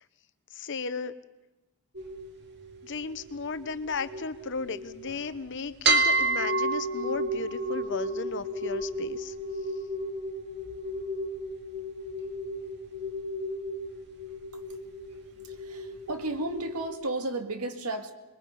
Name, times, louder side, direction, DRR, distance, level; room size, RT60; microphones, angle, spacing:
voice 1, 0.5-1.1 2.8-9.3, left 4 dB, 55° left, 13 dB, 0.9 m, -35 dB
sound 1, 1.9-5.3 5.8-16.9, right 2 dB, 50° right, 2.2 m, -32 dB
voice 2, 15.4-18.1, right 2 dB, 90° right, 7 dB, 2.1 m, -33 dB
26.0 x 21.5 x 5.6 m, 1.1 s
head